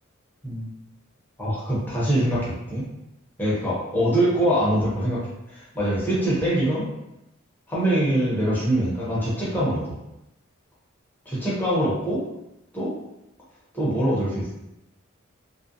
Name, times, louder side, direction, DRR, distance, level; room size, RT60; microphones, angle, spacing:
voice 1, 1.4-2.9 3.4-6.9 7.7-10.0 11.3-12.2 12.7-13.0 13.7-14.5, right 1 dB, 10° left, -8 dB, 0.7 m, -24 dB
2.4 x 2.1 x 2.6 m, 0.88 s
head